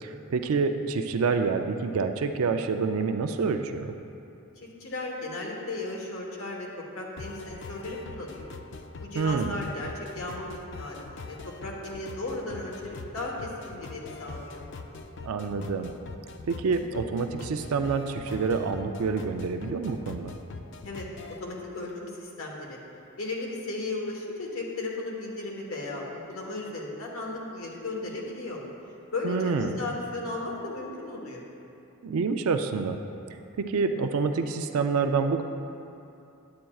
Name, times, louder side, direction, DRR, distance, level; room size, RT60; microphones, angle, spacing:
voice 1, 0.0-4.0 9.1-9.6 15.2-15.9 16.5-20.3 29.2-29.8 32.0-33.0 33.6-35.4, right 4 dB, 80° right, 7 dB, 0.4 m, -27 dB
voice 2, 4.6-8.5 9.0-14.6 20.8-21.0 21.4-22.8 23.2-28.6 29.1-31.5, left 2 dB, 75° left, -2 dB, 1.2 m, -35 dB
sound 1, 7.2-21.4, left 3 dB, 55° left, 0.4 m, -43 dB
9.4 x 8.8 x 2.3 m, 2.7 s
head